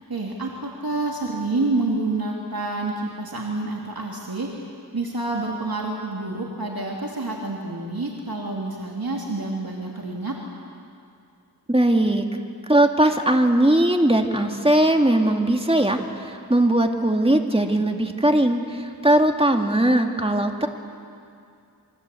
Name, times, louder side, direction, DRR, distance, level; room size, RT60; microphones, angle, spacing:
voice 1, 0.1-10.4, right 2 dB, 60° right, -1 dB, 3.0 m, -28 dB
voice 2, 11.7-12.2 12.7-20.7, right 1 dB, 15° right, 3 dB, 2.3 m, -19 dB
28.0 x 24.0 x 8.5 m, 2.4 s
wide cardioid pair, 50°, 40 cm